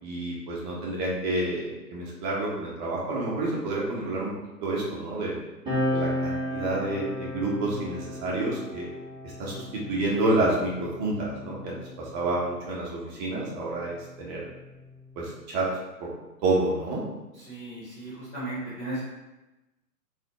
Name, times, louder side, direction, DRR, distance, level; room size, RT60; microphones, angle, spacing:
voice 1, 0.0-4.3 4.6-5.4 5.9-8.9 9.4-14.4 15.2-15.7 16.0-16.1 16.4-17.0, right 2 dB, 30° right, -4 dB, 0.9 m, -29 dB
sound 1, 5.7-12.6 13.5-15.4, equal, 10° right, 1.1 m, -34 dB
voice 2, 17.4-19.0, right 2 dB, 10° left, -13 dB, 0.4 m, -36 dB
4.0 x 2.7 x 3.0 m, 1.0 s
figure-of-eight pair, 120°, 50 cm